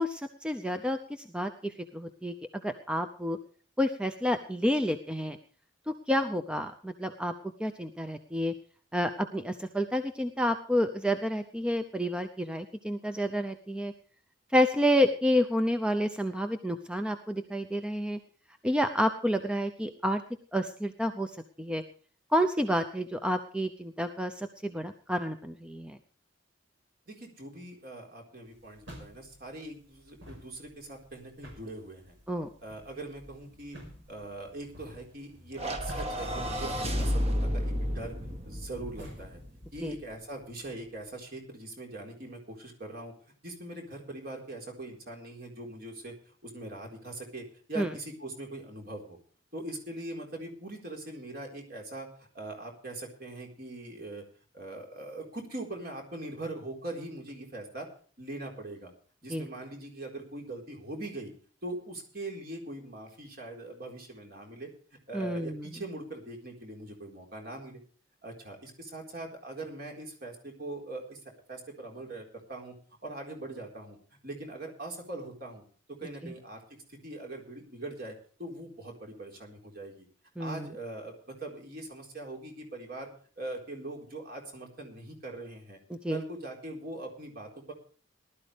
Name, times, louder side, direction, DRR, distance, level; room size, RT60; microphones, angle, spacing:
voice 1, 0.0-2.3 2.6-3.4 3.8-5.4 6.1-7.3 7.6-8.5 8.9-13.9 14.5-18.2 18.6-20.2 20.5-21.3 21.6-21.8 22.3-26.0 32.3-32.5 39.8-39.9 47.8-47.9 59.3-59.5 65.1-65.7 80.4-80.7 86.0-86.2, equal, 5° right, 8 dB, 0.6 m, -29 dB
voice 2, 27.1-32.2 32.6-33.8 34.1-38.1 38.5-39.4 39.7-43.1 43.4-49.2 49.5-54.2 54.5-57.9 58.2-58.9 59.2-61.3 61.6-64.7 65.1-67.8 68.2-71.2 71.5-72.7 73.0-74.0 74.2-75.6 75.9-80.1 80.4-83.1 83.4-85.8 86.1-87.7, right 2 dB, 50° right, 1 dB, 4.2 m, -41 dB
sound 1, 28.5-39.9, equal, 65° right, 5.4 m, -51 dB
sound 2, 35.6-40.0, equal, 30° right, 1.6 m, -32 dB
19.5 x 12.5 x 3.4 m, 0.42 s
head